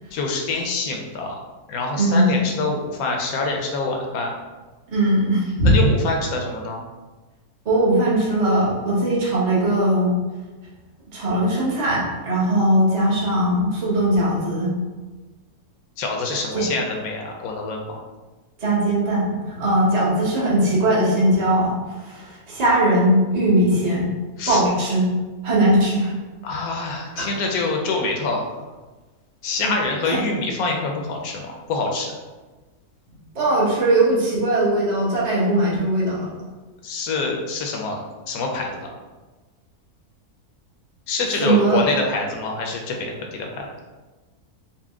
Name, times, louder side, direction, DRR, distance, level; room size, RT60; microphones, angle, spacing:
voice 1, 0.1-1.4 1.7-4.3 5.6-6.8 16.0-18.0 24.4-24.6 26.4-28.6 29.4-32.1 36.8-38.0 38.3-38.8 41.1-43.7, left 3 dB, 75° left, 1 dB, 1.1 m, -25 dB
voice 2, 1.9-2.4 4.9-5.7 7.6-10.2 11.1-14.7 16.5-16.7 18.6-24.1 24.5-25.1 25.4-26.1 27.1-27.3 30.1-30.2 33.3-36.3 41.4-41.8, right 1 dB, 30° right, -5 dB, 0.9 m, -20 dB
4.3 x 2.1 x 3.5 m, 1.2 s
omnidirectional pair, 1.6 m